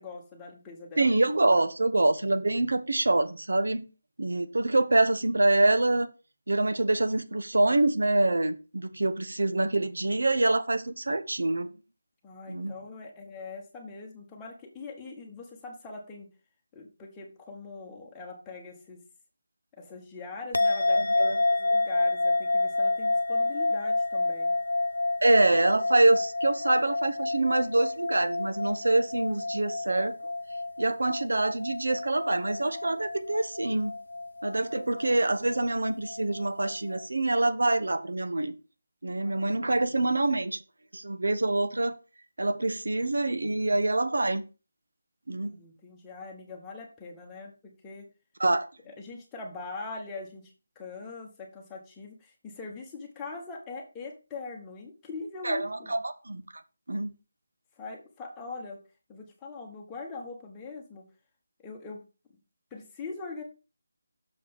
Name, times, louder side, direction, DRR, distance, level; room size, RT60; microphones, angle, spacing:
voice 1, 0.0-1.1 12.2-16.3 16.7-19.0 19.8-24.5 39.2-40.0 45.4-48.1 48.8-55.9 57.8-58.8 59.1-61.0 61.6-62.0 62.7-63.4, left 3 dB, 10° left, 1.2 m, -42 dB
voice 2, 1.0-3.9 4.2-6.1 6.5-11.7 12.5-12.7 20.9-21.3 25.2-30.2 30.8-33.9 34.4-38.5 39.0-40.6 40.9-41.9 42.4-44.4 45.3-45.6 48.4-48.7 55.4-56.4 56.9-57.1, right 2 dB, 90° right, 1.1 m, -25 dB
sound 1, 20.5-37.1, left 2 dB, 80° left, 0.3 m, -29 dB
6.8 x 5.0 x 5.2 m
figure-of-eight pair, 175°, 0 cm